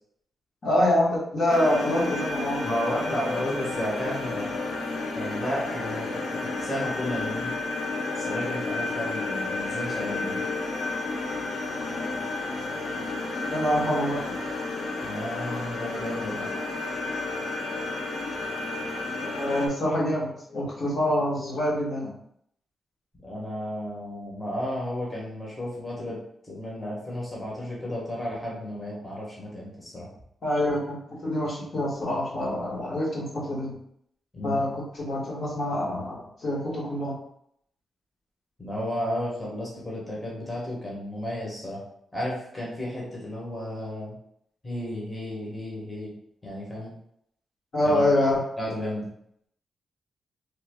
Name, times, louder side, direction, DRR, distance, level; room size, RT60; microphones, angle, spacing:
voice 1, 0.6-2.6 13.5-14.2 19.2-22.1 30.4-33.8 34.4-37.2 47.7-48.4, left 1 dB, 50° left, -6 dB, 1.3 m, -26 dB
sound 1, 1.5-19.7, left 3 dB, 90° left, 0.6 m, -31 dB
voice 2, 2.6-4.5 5.1-7.5 8.2-10.4 15.0-16.5 23.2-26.2 26.4-30.1 34.3-34.6 38.6-41.8 42.1-44.1 44.6-46.1 46.4-46.9 47.8-48.0 48.6-49.1, left 1 dB, 15° left, -5 dB, 1.1 m, -33 dB
3.1 x 2.3 x 3.4 m, 0.71 s
cardioid pair, 115°, 0 cm